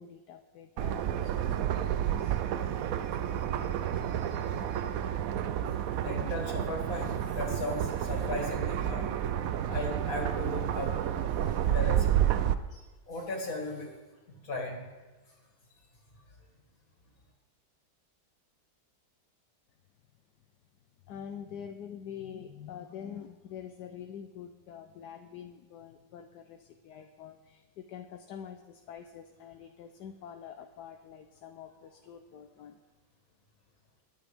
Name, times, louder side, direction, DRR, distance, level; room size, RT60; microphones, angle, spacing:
voice 1, 0.0-2.4 21.1-32.8, left 8 dB, 70° left, 6 dB, 1.3 m, -46 dB
sound 1, 0.8-12.5, right 10 dB, 65° right, 0.8 m, -30 dB
voice 2, 6.0-9.2 9.7-11.0 11.4-13.9 14.3-14.9, left 2 dB, 50° left, 0 dB, 2.8 m, -37 dB
22.0 x 9.1 x 3.5 m, 1.3 s
omnidirectional pair, 2.0 m